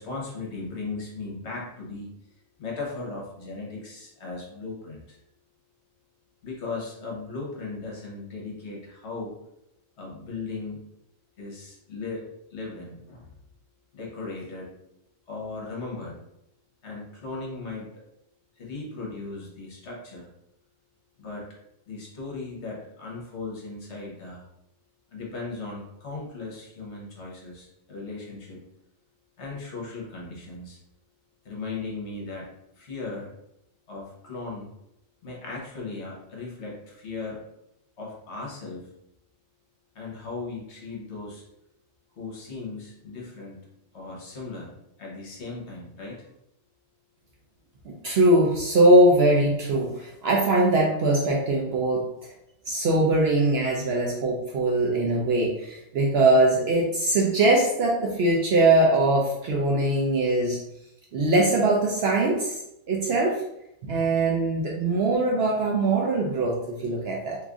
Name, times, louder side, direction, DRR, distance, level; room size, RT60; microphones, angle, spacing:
voice 1, 0.0-2.1 2.6-5.2 6.4-9.4 10.0-10.8 11.4-13.3 13.9-14.7 15.3-16.2 16.8-17.9 18.6-20.3 21.2-21.5 21.9-24.4 25.1-28.6 29.4-30.8 31.4-33.3 33.9-34.7 35.2-37.4 38.0-38.9 39.9-41.4 42.2-43.6 43.9-44.7 45.0-46.3, left 3 dB, 60° left, -2 dB, 1.1 m, -37 dB
voice 2, 47.9-52.0 52.7-60.6 61.1-62.6 62.9-63.4 63.8-67.4, right 2 dB, 65° right, -1 dB, 0.7 m, -21 dB
3.0 x 2.4 x 3.6 m, 0.82 s
omnidirectional pair, 1.4 m